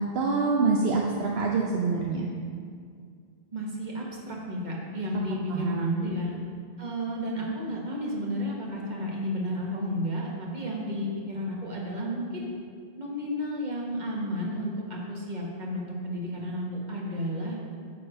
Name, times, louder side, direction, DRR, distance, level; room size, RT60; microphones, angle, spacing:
voice 1, 0.0-2.3 5.5-6.0, right 4 dB, 70° right, -1 dB, 0.9 m, -26 dB
voice 2, 3.5-6.3 6.8-12.4 13.0-17.6, equal, 45° right, -3 dB, 1.6 m, -32 dB
9.3 x 4.1 x 6.6 m, 2.2 s
omnidirectional pair, 1.1 m